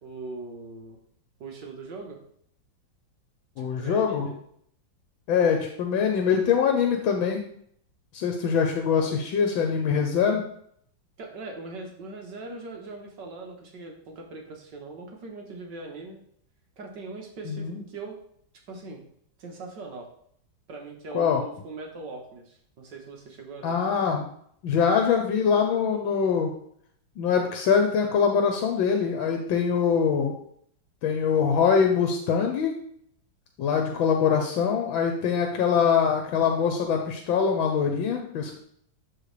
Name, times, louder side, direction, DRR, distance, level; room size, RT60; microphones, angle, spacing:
voice 1, 0.0-1.0 1.4-2.2 3.6-4.4 11.2-16.2 16.8-18.2 18.7-19.0 19.4-20.1 20.7-23.8 33.7-34.0, right 3 dB, 60° right, 1 dB, 1.9 m, -40 dB
voice 2, 3.6-4.3 5.3-7.4 8.1-10.4 17.5-17.8 21.1-21.4 23.6-24.3 24.6-26.5 27.2-30.3 31.0-32.8 33.6-38.6, left 6 dB, 80° left, 3 dB, 1.5 m, -23 dB
11.5 x 4.2 x 3.3 m, 0.65 s
omnidirectional pair, 2.2 m